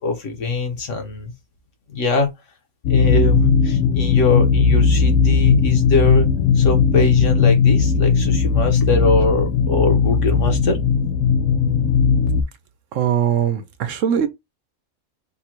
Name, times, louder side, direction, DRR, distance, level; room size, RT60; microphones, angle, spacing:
voice 1, 0.0-1.3 1.9-2.3 2.9-6.3 6.5-10.8, left 3 dB, 60° left, 1.3 m, -22 dB
sound 1, 2.8-12.4, left 5 dB, 85° left, 1.1 m, -17 dB
voice 2, 12.9-14.3, right 9 dB, 65° right, 1.0 m, -20 dB
3.7 x 2.3 x 4.3 m
omnidirectional pair, 1.5 m